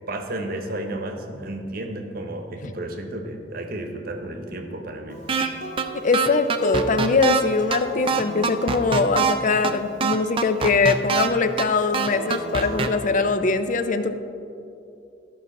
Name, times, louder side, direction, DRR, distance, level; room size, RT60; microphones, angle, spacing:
voice 1, 0.1-5.3, right 1 dB, 55° right, 5 dB, 0.9 m, -32 dB
Acoustic guitar, 5.1-10.3 11.9-13.1, right 1 dB, 65° left, 1.6 m, -35 dB
sound 1, 5.3-5.5 5.8-5.9 6.1-7.4 7.7-7.8 8.1-9.3 9.6-9.7 10.0-11.3 11.6-11.7 11.9-12.9, right 6 dB, 30° right, 0.4 m, -23 dB
voice 2, 6.0-14.1, left 4 dB, 45° left, 9 dB, 0.5 m, -22 dB
13.5 x 5.5 x 4.1 m, 2.7 s
head